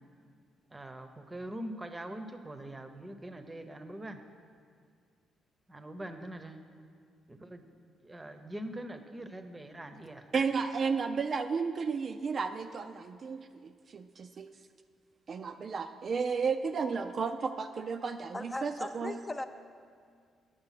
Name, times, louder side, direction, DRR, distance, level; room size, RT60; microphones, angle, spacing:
voice 1, 0.7-4.2 5.7-6.6 7.3-7.6 8.0-10.3, right 1 dB, 20° right, 8 dB, 0.7 m, -43 dB
voice 2, 10.3-14.5 15.3-19.2, right 5 dB, 45° right, 7 dB, 0.3 m, -33 dB
voice 3, 18.3-19.5, left 2 dB, 20° left, 7 dB, 0.4 m, -38 dB
9.0 x 6.7 x 5.7 m, 2.2 s
cardioid pair, 90°, 0 cm